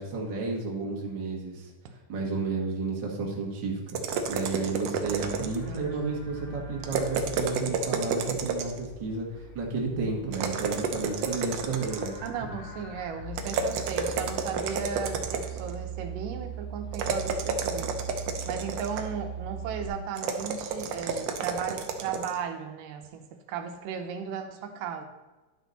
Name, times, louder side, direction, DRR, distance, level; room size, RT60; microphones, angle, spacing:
voice 1, 0.0-1.7 2.1-4.0 4.3-12.1 12.4-12.5, right 4 dB, 40° right, -1 dB, 2.0 m, -32 dB
sound 1, 3.9-5.8 6.8-8.9 10.3-12.3 13.4-15.7 16.9-19.2 20.2-22.4, right 5 dB, 70° right, 1.6 m, -31 dB
Livestock farm animals working animals, 5.0-19.9, right 4 dB, 60° left, 3.8 m, -41 dB
voice 2, 5.7-6.2 12.2-18.0 18.5-25.0, right 6 dB, 85° right, 5 dB, 2.5 m, -36 dB
11.0 x 6.4 x 4.1 m, 1.2 s
omnidirectional pair, 3.8 m